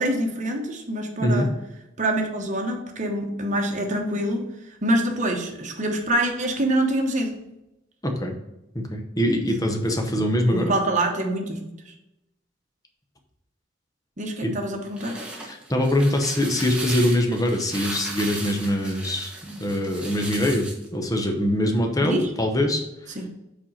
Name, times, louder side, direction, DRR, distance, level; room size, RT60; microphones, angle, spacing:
voice 1, 0.0-1.5 2.0-4.4 4.8-7.3 10.5-11.7 14.2-15.2 22.0-22.2 23.1-23.3, right 1 dB, 40° right, 3 dB, 1.1 m, -25 dB
voice 2, 8.0-8.3 8.7-10.7 14.4-14.6 15.4-22.8, left 1 dB, 20° left, 4 dB, 0.8 m, -23 dB
sound 1, 14.7-20.9, right 2 dB, 5° right, 1.1 m, -36 dB
5.2 x 4.3 x 5.5 m, 0.93 s
head